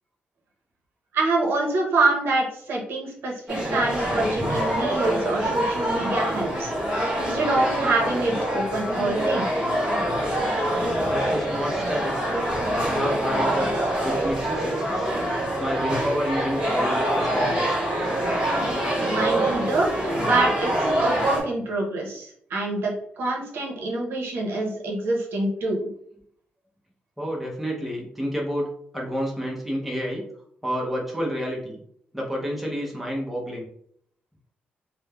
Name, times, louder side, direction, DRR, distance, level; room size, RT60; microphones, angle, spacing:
voice 1, 1.1-6.7 7.2-9.5 19.1-19.9 20.2-25.9, right 2 dB, 75° right, -1 dB, 0.6 m, -25 dB
sound 1, 3.5-21.4, right 1 dB, 20° right, 1.2 m, -25 dB
voice 2, 11.0-12.3 12.8-13.7 14.0-15.1 15.6-17.7 19.0-19.2 27.2-30.2 30.6-31.8 32.1-33.7, equal, 5° right, -2 dB, 0.5 m, -29 dB
3.0 x 2.0 x 2.2 m, 0.66 s
wide cardioid pair, 155°, 4 cm